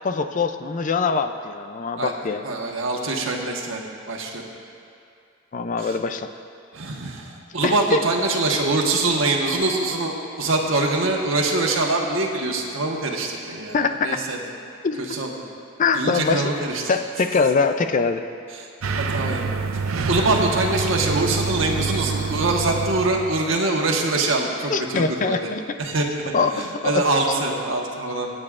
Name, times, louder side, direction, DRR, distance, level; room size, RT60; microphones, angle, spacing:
voice 1, 0.0-2.4 5.5-6.3 7.6-8.0 13.7-14.2 14.8-15.1 15.8-16.5 16.9-18.2 24.7-25.6 26.3-27.0, left 4 dB, 40° left, 8 dB, 0.4 m, -23 dB
voice 2, 2.4-4.5 5.8-5.9 6.7-14.4 15.0-15.3 15.9-16.9 18.5-18.7 19.0-19.4 20.1-25.5 25.8-26.0 26.5-28.3, right 2 dB, 70° right, 0 dB, 1.3 m, -24 dB
sound 1, 18.8-23.5, right 4 dB, 90° right, 0.6 m, -26 dB
25.0 x 8.7 x 2.5 m, 2.5 s
head